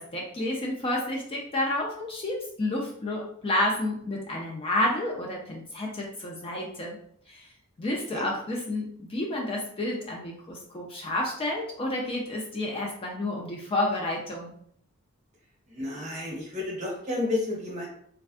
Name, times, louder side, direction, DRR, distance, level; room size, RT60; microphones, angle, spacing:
voice 1, 0.0-7.0 7.3-7.5 7.8-14.5, left 1 dB, 25° left, -1 dB, 0.4 m, -30 dB
voice 2, 15.7-17.9, left 2 dB, 35° right, -3 dB, 0.9 m, -31 dB
3.4 x 2.3 x 2.4 m, 0.66 s
head